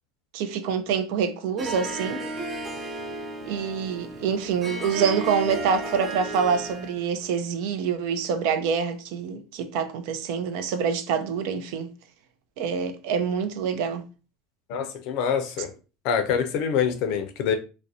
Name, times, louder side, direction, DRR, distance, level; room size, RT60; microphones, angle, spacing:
voice 1, 0.3-2.3 3.4-11.9 12.6-14.0, right 6 dB, 70° right, 0.4 m, -26 dB
Harp, 1.6-7.0, right 2 dB, 30° right, 0.6 m, -34 dB
voice 2, 14.7-15.7 16.0-17.6, left 7 dB, 65° left, 0.5 m, -25 dB
2.4 x 2.0 x 2.6 m
supercardioid pair, 100°, 0 cm